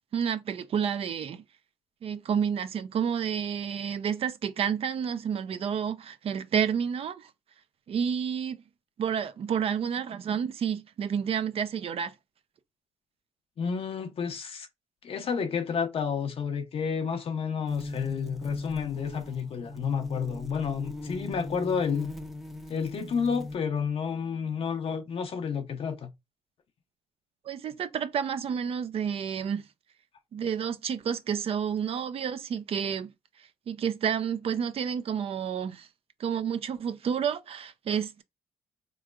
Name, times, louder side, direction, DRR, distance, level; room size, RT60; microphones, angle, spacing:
voice 1, 0.1-1.4 2.0-7.3 7.9-8.6 9.0-12.1 27.5-29.6 30.3-33.1 33.7-35.9 36.2-38.2, right 7 dB, 55° right, 0.5 m, -30 dB
voice 2, 13.6-14.7 15.0-22.1 22.7-26.1, left 6 dB, 55° left, 0.6 m, -30 dB
sound 1, 17.7-23.6, left 2 dB, ahead, 0.6 m, -39 dB
3.5 x 3.1 x 2.3 m
supercardioid pair, 70°, 12 cm